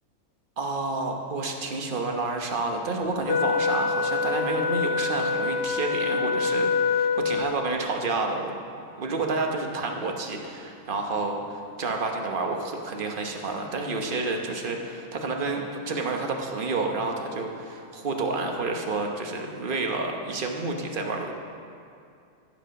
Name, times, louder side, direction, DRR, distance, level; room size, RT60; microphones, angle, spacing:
voice 1, 0.6-8.6 9.0-21.3, right 3 dB, 40° right, 2 dB, 1.0 m, -29 dB
Wind instrument woodwind instrument, 3.3-7.7, left 5 dB, 90° left, 1.3 m, -25 dB
15.0 x 5.0 x 6.3 m, 2.5 s
omnidirectional pair, 1.5 m